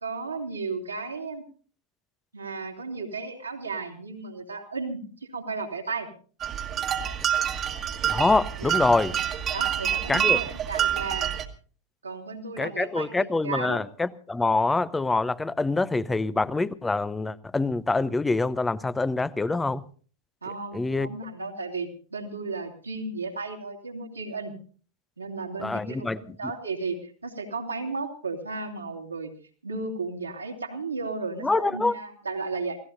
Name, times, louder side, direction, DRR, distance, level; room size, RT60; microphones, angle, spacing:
voice 1, 0.0-1.5 2.3-6.1 8.6-8.8 9.5-11.3 12.0-13.8 20.4-24.5 25.2-29.3 29.6-32.8, right 4 dB, 80° right, 1 dB, 2.6 m, -34 dB
sound 1, 6.4-11.5, right 9 dB, 30° right, 1.5 m, -27 dB
voice 2, 8.0-9.1 10.1-10.4 12.6-19.8 20.7-21.1 25.6-26.2 31.4-31.9, left 3 dB, 10° left, 20 dB, 0.6 m, -25 dB
29.0 x 17.0 x 2.6 m, 0.42 s
figure-of-eight pair, 90°, 0 cm